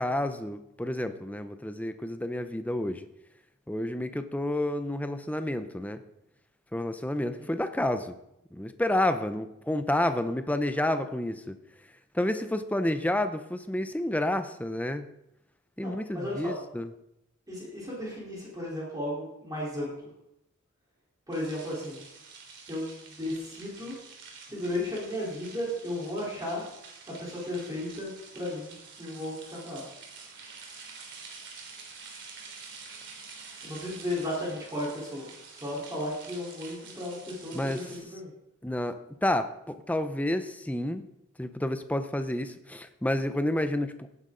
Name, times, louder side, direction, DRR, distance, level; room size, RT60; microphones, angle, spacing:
voice 1, 0.0-3.1 3.7-6.0 6.7-8.2 8.5-11.6 12.1-15.1 15.8-16.9 37.5-37.9 38.6-41.0 41.4-44.1, left 1 dB, 5° left, 9 dB, 0.7 m, -30 dB
voice 2, 15.8-16.5 17.5-20.1 21.3-22.0 22.7-22.9 23.2-23.9 24.5-26.7 27.2-29.8 33.6-38.3, left 1 dB, 15° right, -6 dB, 4.0 m, -35 dB
sound 1, 21.3-38.0, right 4 dB, 55° right, 3.2 m, -48 dB
17.5 x 9.8 x 3.9 m, 0.83 s
head